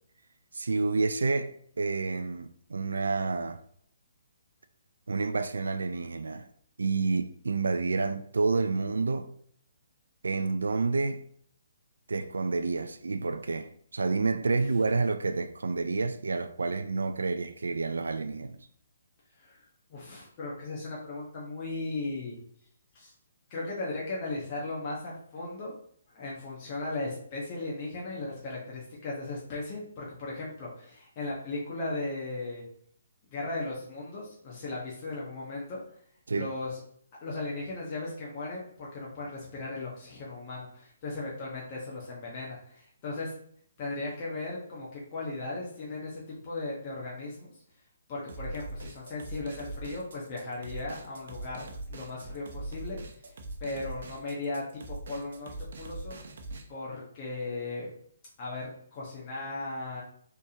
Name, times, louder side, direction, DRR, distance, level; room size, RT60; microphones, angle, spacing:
voice 1, 0.5-3.6 5.1-6.5 6.8-9.3 10.2-11.2 12.1-18.6 36.3-36.5, right 3 dB, 75° right, 0.4 m, -29 dB
voice 2, 19.9-22.4 22.9-23.1 23.5-25.7 26.1-32.6 33.3-35.8 36.3-36.8 37.2-43.3 43.8-47.6 48.1-53.0 53.2-53.3 53.6-56.1 56.7-57.9 58.4-60.0, left 2 dB, 35° left, 1.2 m, -37 dB
sound 1, 48.3-56.6, right 2 dB, 60° right, 0.8 m, -41 dB
4.3 x 3.5 x 2.9 m
figure-of-eight pair, 135°, 0 cm